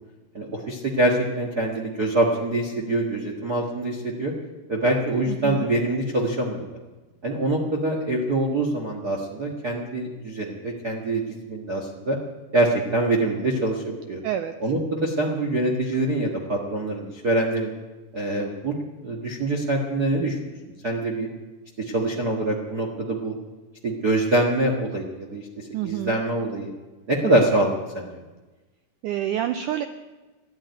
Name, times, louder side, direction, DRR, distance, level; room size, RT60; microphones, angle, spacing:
voice 1, 0.3-4.3 4.7-6.6 7.2-11.2 11.5-12.2 12.5-14.2 14.6-17.7 18.1-18.8 19.0-20.4 20.8-21.3 21.8-23.3 23.8-26.7 27.1-28.1, right 1 dB, 65° right, -1 dB, 0.9 m, -24 dB
voice 2, 5.3-5.7 14.2-14.6 20.8-20.9 25.7-26.2 29.0-29.8, right 11 dB, 90° right, 8 dB, 1.8 m, -28 dB
13.5 x 11.5 x 9.1 m, 1.2 s
omnidirectional pair, 4.4 m